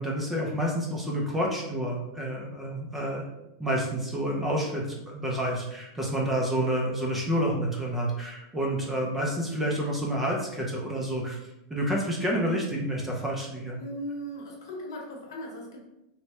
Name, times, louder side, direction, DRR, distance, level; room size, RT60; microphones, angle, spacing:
voice 1, 0.0-3.3 3.6-13.8, equal, 5° right, -2 dB, 0.3 m, -29 dB
voice 2, 13.8-15.9, equal, 80° left, -1 dB, 0.9 m, -38 dB
3.1 x 2.1 x 2.8 m, 0.90 s
supercardioid pair, 175°, 2 cm